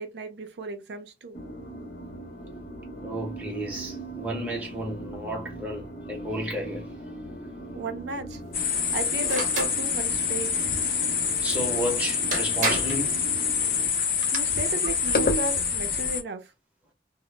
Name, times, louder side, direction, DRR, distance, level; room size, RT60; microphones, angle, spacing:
voice 1, 0.0-1.4 7.7-8.4 8.9-10.6 14.3-16.5, right 2 dB, 75° right, 0.4 m, -34 dB
sound 1, 1.3-13.9, right 1 dB, 75° left, 0.8 m, -40 dB
voice 2, 3.0-6.9 11.4-13.2, right 1 dB, 10° right, 0.6 m, -32 dB
sound 2, 8.5-16.2, left 6 dB, 50° left, 0.5 m, -26 dB
sound 3, 9.2-9.8 11.8-11.9 12.3-13.0 14.0-14.4, right 2 dB, 45° right, 0.7 m, -29 dB
2.0 x 2.0 x 3.1 m
head